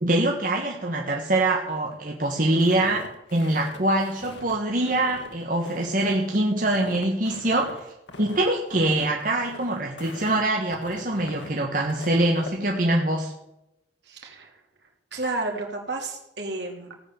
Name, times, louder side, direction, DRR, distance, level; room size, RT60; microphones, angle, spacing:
voice 1, 0.0-7.8 8.2-13.3, right 1 dB, 50° right, 0 dB, 1.6 m, -24 dB
Walk footsteps, 2.6-12.6, left 2 dB, 90° left, 1.8 m, -42 dB
voice 2, 14.0-14.6 15.1-16.9, right 2 dB, 75° right, 1 dB, 3.4 m, -31 dB
17.5 x 8.6 x 7.2 m, 0.86 s
head